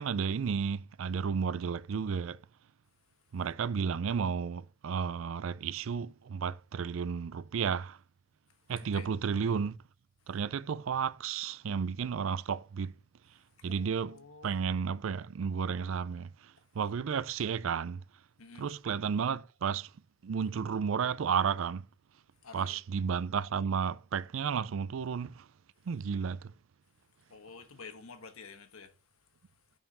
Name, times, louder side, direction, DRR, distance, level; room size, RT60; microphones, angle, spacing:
voice 1, 0.0-2.4 3.3-8.0 8.7-9.8 10.3-12.9 13.6-16.3 16.7-18.0 18.6-19.9 20.2-21.8 22.5-25.4 25.9-26.5, right 6 dB, 65° right, 0.4 m, -32 dB
voice 2, 8.8-9.1 13.6-14.6 18.4-18.7 22.4-22.8 27.3-29.0, left 5 dB, 85° left, 1.2 m, -50 dB
7.1 x 5.6 x 3.9 m
head